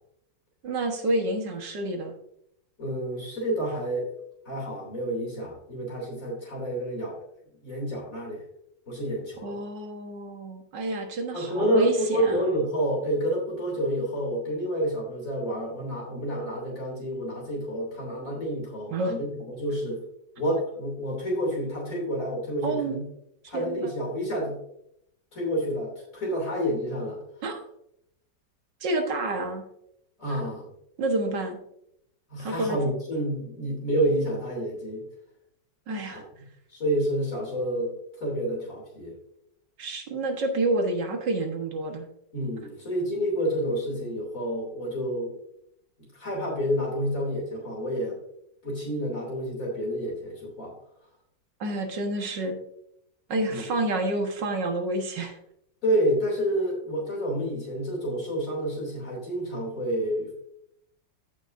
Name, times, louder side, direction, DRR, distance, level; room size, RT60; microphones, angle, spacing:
voice 1, 0.6-2.1 9.4-12.4 18.9-19.2 22.6-23.0 23.4-23.9 27.4-27.6 28.8-29.7 31.0-31.6 32.4-32.8 35.9-36.2 39.8-42.1 51.6-52.6 53.3-55.4, right 2 dB, 75° right, 4 dB, 2.0 m, -28 dB
voice 2, 2.8-4.1 4.4-7.2 7.6-8.4 8.9-9.6 11.3-20.0 20.4-23.0 23.5-24.6 25.3-27.2 30.2-30.7 32.3-35.1 36.1-36.2 36.7-39.2 42.3-45.3 46.0-48.2 48.6-50.7 53.5-53.6 55.8-60.3, equal, 45° left, -3 dB, 3.2 m, -29 dB
14.5 x 6.3 x 2.6 m, 0.75 s
omnidirectional pair, 1.9 m